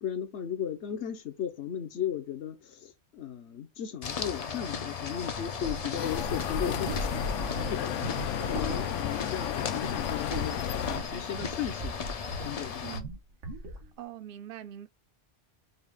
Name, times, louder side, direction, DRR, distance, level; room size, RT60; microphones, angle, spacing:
voice 1, 0.0-7.2 7.7-8.0 8.4-10.6 10.8-12.0 12.4-12.9, left 9 dB, 70° left, 1.1 m, -36 dB
sound 1, 4.0-13.0, left 6 dB, 45° left, 0.5 m, -36 dB
sound 2, 5.6-12.6 12.9-13.2 13.4-13.9, right 1 dB, 85° right, 1.5 m, -38 dB
sound 3, 6.0-11.0, left 10 dB, 90° left, 0.9 m, -34 dB
voice 2, 13.7-14.9, right 12 dB, 60° right, 0.6 m, -43 dB
5.4 x 2.4 x 3.4 m
omnidirectional pair, 1.2 m